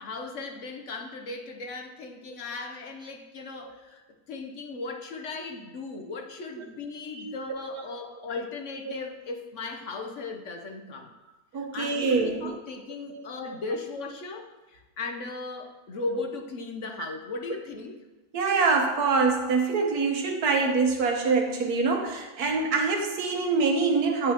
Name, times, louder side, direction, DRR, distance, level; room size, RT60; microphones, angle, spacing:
voice 1, 0.0-11.1 11.5-18.0, left 3 dB, 55° left, 4 dB, 1.0 m, -37 dB
voice 2, 7.2-7.8 11.5-12.5 13.1-13.3 18.3-24.3, right 4 dB, 75° right, 3 dB, 1.5 m, -25 dB
9.2 x 8.1 x 2.9 m, 1.1 s
omnidirectional pair, 1.6 m